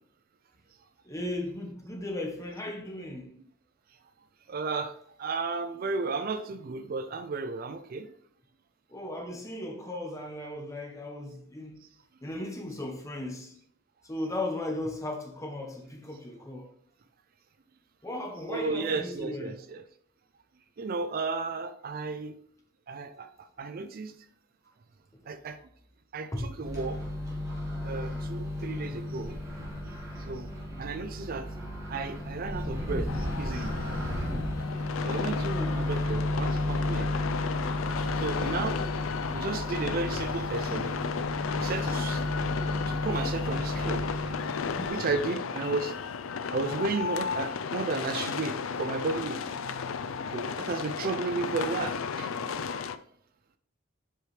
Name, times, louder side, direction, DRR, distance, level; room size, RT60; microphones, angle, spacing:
voice 1, 1.0-3.4 8.9-11.8 12.2-13.5 14.0-16.7 18.0-19.6 26.3-26.5 35.5-35.9 44.8-45.1, left 1 dB, 15° left, 1.1 m, -36 dB
voice 2, 4.5-8.1 18.5-19.8 20.8-22.4 22.9-24.1 25.3-25.6 26.1-27.0 27.8-29.4 30.2-30.5 30.8-31.5 31.9-33.8 35.0-37.1 38.2-38.8 39.3-41.0 41.5-42.2 42.9-44.1 44.9-45.9 46.5-49.5 50.3-52.3, right 4 dB, 45° right, 0.4 m, -33 dB
Microwave oven, 26.6-44.9, left 1 dB, 15° right, 1.9 m, -33 dB
sound 1, 33.1-53.0, left 6 dB, 80° left, 0.4 m, -34 dB
7.5 x 4.8 x 3.2 m
head